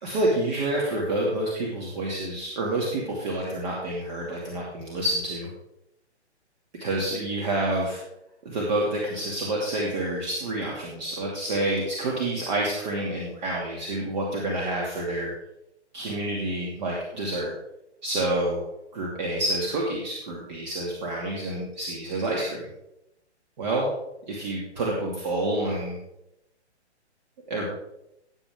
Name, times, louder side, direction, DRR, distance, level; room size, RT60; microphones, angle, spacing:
voice 1, 0.0-5.5 6.8-8.0 8.4-15.3 15.9-17.5 18.0-18.6 18.9-22.7 23.6-23.9 24.3-26.0 27.5-27.7, right 1 dB, 40° right, -3 dB, 2.6 m, -28 dB
17.0 x 8.0 x 3.7 m, 0.84 s
hypercardioid pair, 150°, 35 cm